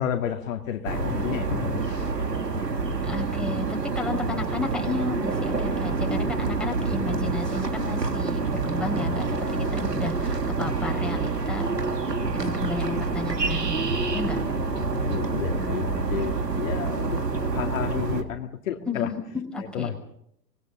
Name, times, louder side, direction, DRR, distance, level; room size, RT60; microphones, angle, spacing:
voice 1, 0.0-2.1 14.8-17.2 17.5-19.1 19.6-20.0, left 9 dB, 50° left, 5 dB, 2.4 m, -31 dB
sound 1, 0.8-18.2, right 3 dB, 80° right, 3.5 m, -27 dB
voice 2, 3.0-11.7 12.0-13.8 14.1-14.4 18.9-20.0, left 3 dB, ahead, 1 dB, 6.3 m, -33 dB
25.5 x 22.0 x 6.9 m, 0.73 s
figure-of-eight pair, 110°, 48 cm